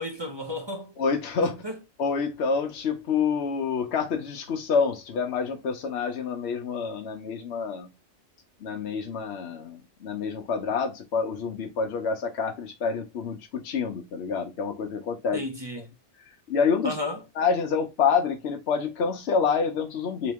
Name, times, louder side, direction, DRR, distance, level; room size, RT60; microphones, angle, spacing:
voice 1, 0.0-0.9 1.4-1.8 15.3-15.9 16.8-17.3, left 1 dB, 30° right, 0.6 m, -33 dB
voice 2, 1.0-1.6 2.0-7.9 8.6-15.4 16.5-17.0 17.4-20.3, left 5 dB, 70° left, 1.0 m, -27 dB
3.8 x 3.0 x 3.4 m
omnidirectional pair, 1.2 m